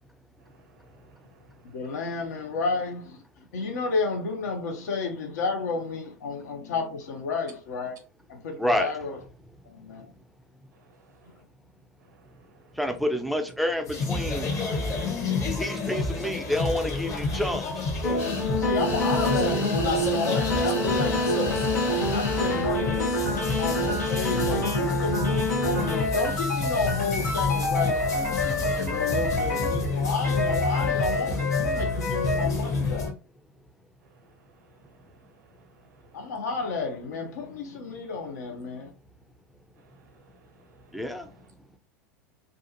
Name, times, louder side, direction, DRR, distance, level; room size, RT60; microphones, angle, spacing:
voice 1, 0.5-1.0 1.3-1.8 10.9-11.0 12.1-12.7 15.5-15.6 34.9-36.2 39.8-40.3 40.7-40.9, right 4 dB, 60° right, 0.6 m, -61 dB
voice 2, 1.7-8.0 8.3-9.2 9.6-10.1 18.6-21.6 22.1-33.1 36.1-38.9, left 4 dB, 70° left, 0.8 m, -31 dB
voice 3, 8.6-8.9 12.8-14.5 15.6-17.9 40.9-41.3, left 1 dB, ahead, 0.4 m, -28 dB
sound 1, 13.8-33.1, left 3 dB, 35° left, 0.9 m, -30 dB
sound 2, 18.0-30.0 30.2-32.5, left 1 dB, 90° left, 1.0 m, -27 dB
sound 3, 18.2-24.7, left 2 dB, 50° left, 1.4 m, -37 dB
2.5 x 2.4 x 2.7 m
figure-of-eight pair, 85°, 9 cm